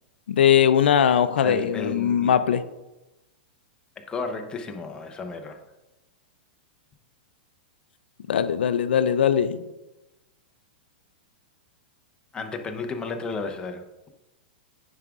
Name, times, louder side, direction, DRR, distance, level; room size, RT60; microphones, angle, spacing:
voice 1, 0.3-2.6 8.3-9.6, left 9 dB, 90° left, 13 dB, 0.4 m, -20 dB
voice 2, 1.4-2.3 4.0-5.6 12.3-13.8, left 4 dB, 15° left, 5 dB, 0.6 m, -33 dB
9.3 x 4.9 x 2.4 m, 0.99 s
hypercardioid pair, 145°, 6 cm